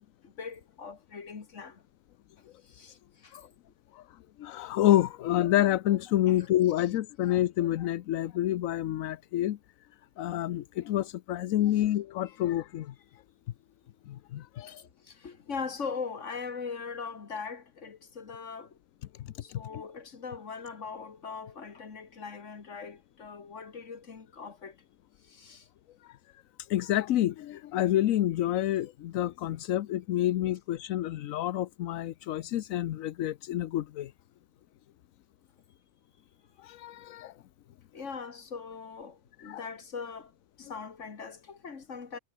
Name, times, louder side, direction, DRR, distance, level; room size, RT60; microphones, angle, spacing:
voice 1, 0.2-1.8 2.7-3.0 3.2-3.3 6.3-6.4 14.7-14.8 15.1-18.7 19.4-24.7 25.3-25.6 37.9-40.3 40.6-42.2, left 5 dB, 65° left, 2.2 m, -40 dB
voice 2, 4.4-9.6 10.2-12.9 14.1-14.8 19.2-19.8 26.6-34.1 36.6-37.3 39.4-39.7, left 13 dB, 85° left, 1.1 m, -28 dB
omnidirectional pair, 1.4 m